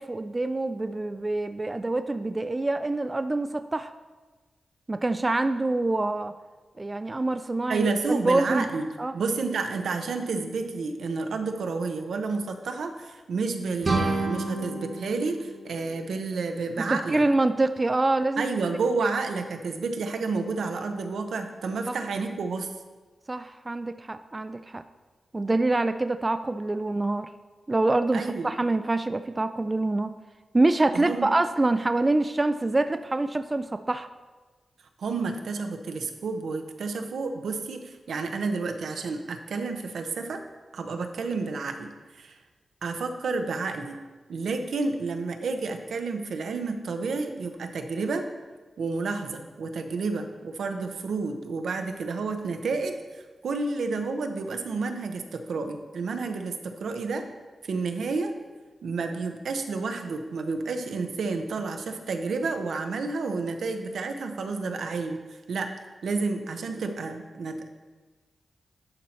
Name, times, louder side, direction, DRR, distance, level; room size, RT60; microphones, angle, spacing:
voice 1, 0.0-3.9 4.9-6.3 6.8-8.6 9.0-9.2 16.9-18.5 21.9-22.0 23.3-24.8 25.3-27.3 27.7-30.1 30.5-34.1, right 2 dB, 30° right, 10 dB, 0.3 m, -25 dB
voice 2, 7.7-8.9 9.1-17.2 18.4-22.7 28.1-28.5 30.9-31.3 35.0-40.4 40.7-41.9 42.2-42.4 42.8-44.0 44.3-48.3 48.8-57.2 57.6-58.3 58.8-65.2 65.5-65.7 66.0-67.7, right 4 dB, 85° right, 6 dB, 0.7 m, -30 dB
sound 1, 13.8-16.6, right 2 dB, 45° right, 1.1 m, -30 dB
11.0 x 4.3 x 4.1 m, 1.3 s
cardioid pair, 65°, 0 cm